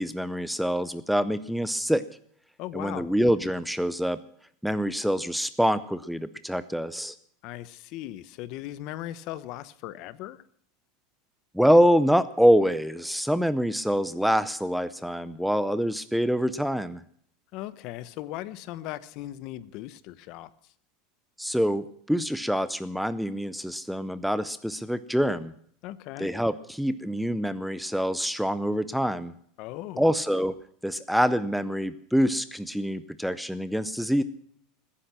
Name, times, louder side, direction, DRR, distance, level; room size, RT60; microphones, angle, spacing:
voice 1, 0.0-2.0 2.7-4.2 4.6-7.1 11.5-17.0 21.4-25.5 26.2-29.3 30.0-30.5 30.8-34.2, equal, ahead, 14 dB, 0.5 m, -25 dB
voice 2, 2.6-3.1 7.4-10.4 17.5-20.5 25.8-26.3 29.6-30.1, left 14 dB, 45° left, 16 dB, 0.9 m, -38 dB
21.0 x 10.0 x 6.0 m, 0.63 s
supercardioid pair, 155°, 0 cm